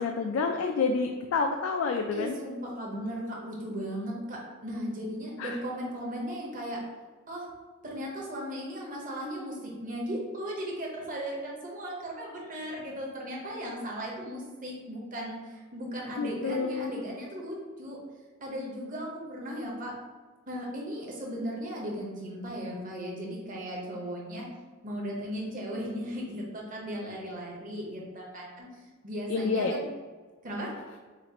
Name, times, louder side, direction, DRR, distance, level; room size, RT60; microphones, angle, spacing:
voice 1, 0.0-2.4 5.4-5.6 16.2-17.0 29.3-29.7, left 4 dB, 70° left, 4 dB, 0.4 m, -29 dB
voice 2, 2.1-6.8 7.3-7.5 7.8-18.0 18.4-19.9 20.5-24.5 24.8-28.7 29.0-29.8 30.4-30.7, equal, 40° right, -2 dB, 1.1 m, -36 dB
7.2 x 2.5 x 2.9 m, 1.4 s
head